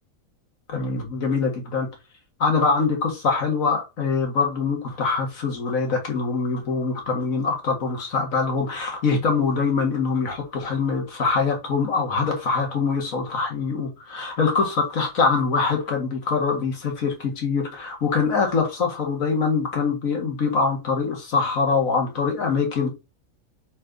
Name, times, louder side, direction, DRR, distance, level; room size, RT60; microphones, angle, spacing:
voice 1, 0.7-1.9 2.4-22.9, left 4 dB, 65° left, 2.2 m, -24 dB
4.3 x 4.3 x 5.1 m
omnidirectional pair, 1.5 m